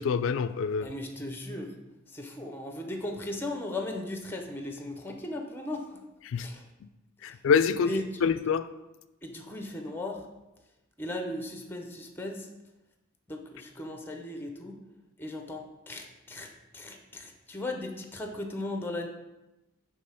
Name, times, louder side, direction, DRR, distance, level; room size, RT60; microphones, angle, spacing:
voice 1, 0.0-0.9 6.3-6.5 7.2-8.7, left 6 dB, 65° left, 12 dB, 0.3 m, -26 dB
voice 2, 0.8-1.7 2.1-6.0 6.4-6.6 7.3-7.4 7.9-8.3 9.2-10.2 11.0-12.5 13.3-14.8 15.2-19.1, left 1 dB, 10° left, 3 dB, 0.6 m, -37 dB
5.3 x 3.7 x 5.6 m, 0.99 s
head